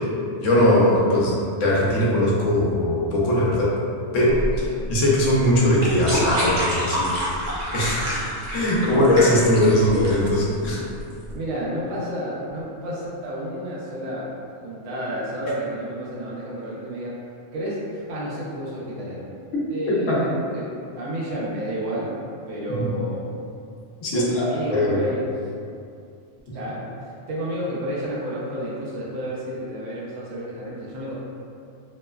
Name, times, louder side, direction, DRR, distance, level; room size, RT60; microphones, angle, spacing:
voice 1, 0.4-3.7 4.1-8.1 8.5-10.8 19.9-20.3 22.8-22.9 24.0-25.1, left 1 dB, 75° left, -5 dB, 1.0 m, -20 dB
sound 1, 4.3-11.3, equal, 50° right, 0.7 m, -28 dB
voice 2, 11.3-17.2 17.5-19.3 19.7-22.1 22.5-23.3 24.1-25.2 26.5-31.1, equal, 75° right, -6 dB, 1.0 m, -31 dB
3.1 x 2.1 x 2.2 m, 2.4 s
omnidirectional pair, 1.3 m